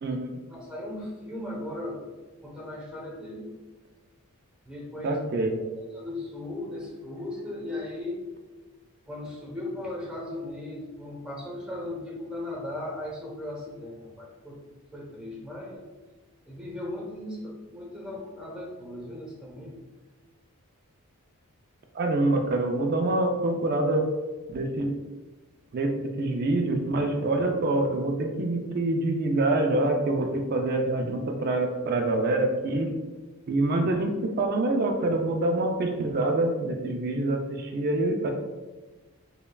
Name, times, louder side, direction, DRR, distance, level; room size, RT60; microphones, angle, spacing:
voice 1, 0.5-2.1 2.4-3.5 4.6-5.2 5.9-8.2 9.1-14.6 14.9-15.9 16.4-19.8, left 1 dB, 5° right, -4 dB, 0.8 m, -37 dB
voice 2, 5.0-5.5 21.9-24.1 24.5-24.9 25.7-32.9 33.5-38.3, right 2 dB, 45° right, 3 dB, 0.3 m, -26 dB
5.2 x 2.3 x 2.2 m, 1.2 s
head